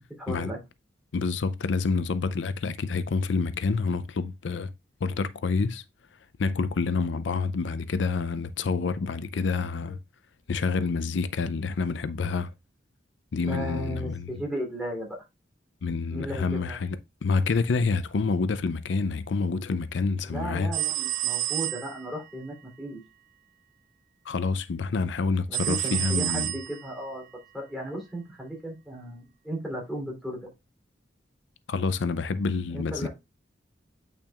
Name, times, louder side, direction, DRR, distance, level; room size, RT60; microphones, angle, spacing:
voice 1, 0.2-0.6 13.4-15.2 16.1-16.8 20.3-23.0 25.5-27.2 27.5-30.5 32.7-33.1, right 1 dB, ahead, 3.1 m, -35 dB
voice 2, 1.1-4.7 5.0-5.8 6.4-10.0 10.5-12.5 13.3-14.3 15.8-20.7 24.3-26.5 31.7-33.1, left 4 dB, 80° left, 0.5 m, -28 dB
sound 1, 20.7-22.2 25.5-27.0, right 16 dB, 45° right, 0.5 m, -30 dB
8.6 x 5.6 x 2.4 m
head